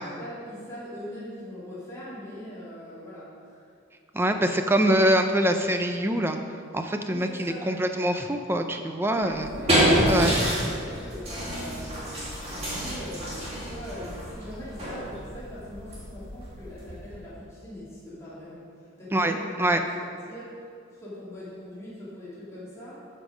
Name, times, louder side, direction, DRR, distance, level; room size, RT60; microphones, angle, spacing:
voice 1, 0.0-3.6 4.1-5.1 7.1-7.9 9.1-9.9 10.2-23.1, equal, 15° left, -10 dB, 2.7 m, -42 dB
voice 2, 4.1-6.4 6.7-9.5 10.1-10.3 19.1-19.3 19.6-19.8, right 1 dB, 10° right, 6 dB, 0.5 m, -24 dB
sound 1, 9.2-17.3, equal, 30° right, 2.1 m, -28 dB
12.0 x 5.6 x 5.0 m, 2.3 s
head